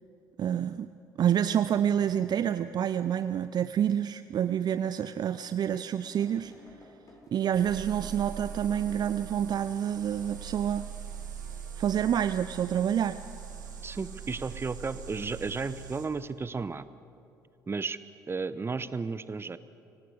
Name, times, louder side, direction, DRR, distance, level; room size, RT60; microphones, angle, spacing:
voice 1, 0.4-0.9 1.2-6.5 7.3-10.9 11.8-13.2, right 9 dB, 45° right, 13 dB, 0.6 m, -28 dB
sound 1, 4.5-4.6 5.1-5.2 6.0-10.3 10.7-11.3 12.0-12.3, left 1 dB, 35° left, 7.1 m, -54 dB
sound 2, 7.5-16.1, right 7 dB, 85° right, 2.4 m, -42 dB
voice 2, 13.8-16.9 17.7-18.0 18.3-19.6, right 4 dB, 25° right, 15 dB, 1.0 m, -33 dB
25.0 x 18.0 x 8.2 m, 2.7 s
figure-of-eight pair, 50°, 10 cm